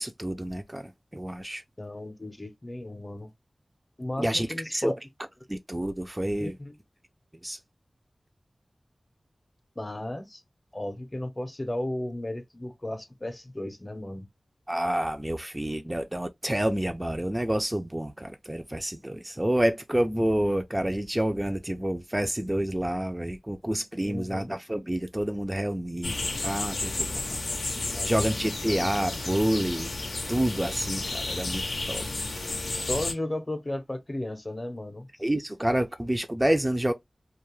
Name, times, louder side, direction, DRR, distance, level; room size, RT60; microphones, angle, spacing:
voice 1, 0.0-1.6 4.2-4.9 5.5-6.5 7.4-7.6 14.7-27.4 27.7-29.9 30.3-32.3 35.2-36.9, right 1 dB, 15° right, 0.3 m, -28 dB
voice 2, 1.8-3.3 4.0-5.0 6.4-6.7 9.8-10.4 10.7-14.3 24.0-24.5 27.9-28.2 32.7-35.1, left 1 dB, 30° left, 0.6 m, -34 dB
sound 1, 26.0-33.1, left 2 dB, 85° left, 0.5 m, -32 dB
2.3 x 2.0 x 3.0 m
wide cardioid pair, 60°, 0 cm